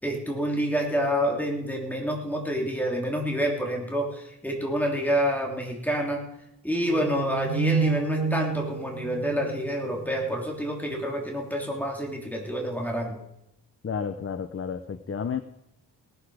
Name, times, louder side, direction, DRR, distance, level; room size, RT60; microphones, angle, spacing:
voice 1, 0.0-6.2 6.6-13.2, equal, 5° left, 0 dB, 3.2 m, -28 dB
sound 1, 6.9-10.3, right 4 dB, 50° right, 5.5 m, -29 dB
voice 2, 13.8-15.4, left 6 dB, 30° left, 11 dB, 0.7 m, -31 dB
18.0 x 12.0 x 5.0 m, 0.85 s
wide cardioid pair, 130°, 43 cm